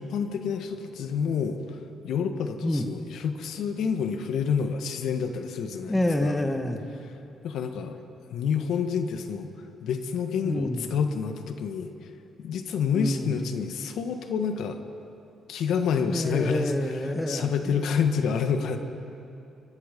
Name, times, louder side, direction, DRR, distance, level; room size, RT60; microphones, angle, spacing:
voice 1, 0.0-6.4 7.4-8.0 8.3-9.5 9.8-12.1 12.4-14.8 15.5-18.8, left 6 dB, 75° left, 6 dB, 1.6 m, -28 dB
voice 2, 5.9-6.8 10.4-10.9 12.9-13.4 16.1-17.8, left 1 dB, 10° left, 5 dB, 1.8 m, -28 dB
24.0 x 23.0 x 5.4 m, 2.8 s
cardioid pair, 90°, 0 cm